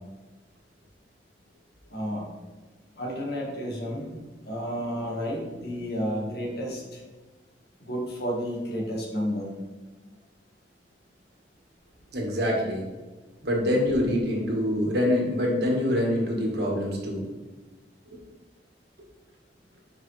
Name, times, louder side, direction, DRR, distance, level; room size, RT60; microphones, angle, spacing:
voice 1, 1.9-2.3 3.0-4.2 4.4-7.0 7.8-9.5, equal, 60° left, -1 dB, 1.7 m, -31 dB
voice 2, 12.1-12.8 13.4-17.2 18.1-18.2, left 1 dB, 65° right, -1 dB, 1.7 m, -25 dB
7.4 x 5.2 x 3.3 m, 1.3 s
head